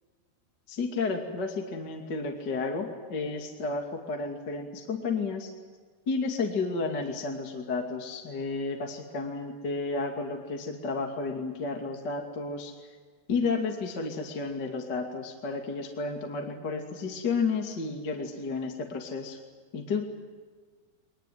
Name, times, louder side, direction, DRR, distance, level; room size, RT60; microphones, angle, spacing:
voice 1, 0.7-5.5 6.1-12.7 13.3-19.4 19.7-20.1, left 4 dB, 30° left, 2 dB, 2.4 m, -32 dB
24.5 x 20.5 x 9.4 m, 1.5 s
omnidirectional pair, 4.8 m